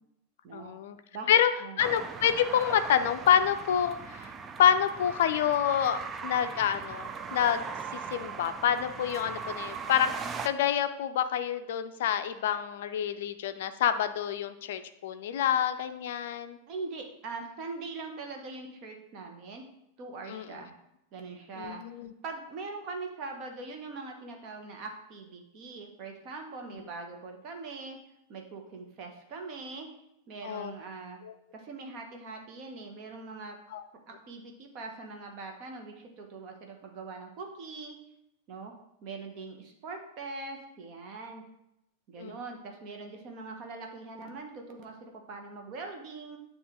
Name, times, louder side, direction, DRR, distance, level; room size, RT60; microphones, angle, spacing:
voice 1, 0.5-1.0 1.3-1.5 1.8-4.3 4.6-7.6 8.1-16.6 20.3-20.5 21.6-22.1 30.4-30.7 31.2-31.3 33.7-33.8 42.2-42.4, left 9 dB, 55° left, 10 dB, 0.4 m, -27 dB
sound 1, 1.8-10.5, right 5 dB, 20° right, 0.4 m, -39 dB
voice 2, 16.7-19.6 20.0-20.7 21.1-21.8 22.2-28.0 28.3-29.9 30.3-31.2 31.5-33.6 34.1-38.0 38.5-38.7 39.0-41.4 42.1-46.4, right 3 dB, 40° right, 3 dB, 1.1 m, -42 dB
9.2 x 3.1 x 3.8 m, 0.82 s
figure-of-eight pair, 90°, 0 cm